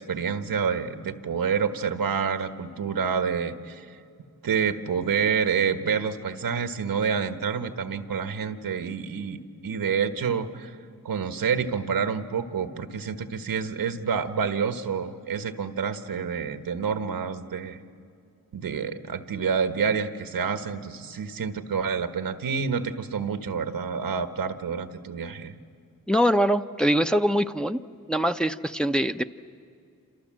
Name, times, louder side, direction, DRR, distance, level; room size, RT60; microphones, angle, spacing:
voice 1, 0.0-4.0 4.4-10.8 11.0-17.8 18.5-25.5, right 6 dB, 80° right, 8 dB, 1.4 m, -28 dB
voice 2, 26.1-27.8 28.1-29.2, equal, ahead, 6 dB, 0.9 m, -23 dB
28.0 x 27.5 x 7.6 m, 2.3 s
cardioid pair, 40°, 34 cm